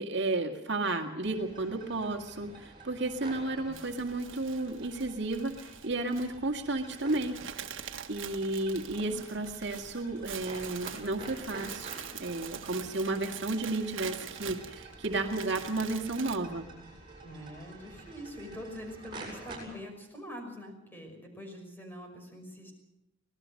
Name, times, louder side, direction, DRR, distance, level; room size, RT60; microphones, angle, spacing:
voice 1, 0.0-7.4 7.7-11.9 12.2-16.7, right 2 dB, 60° right, 3 dB, 2.1 m, -33 dB
sound 1, 1.2-19.6, right 3 dB, 25° right, 7.9 m, -49 dB
sound 2, 3.7-16.4, right 8 dB, 80° right, 1.6 m, -44 dB
voice 2, 17.2-22.7, left 1 dB, 10° left, 3 dB, 5.6 m, -44 dB
25.5 x 18.5 x 6.5 m, 0.85 s
head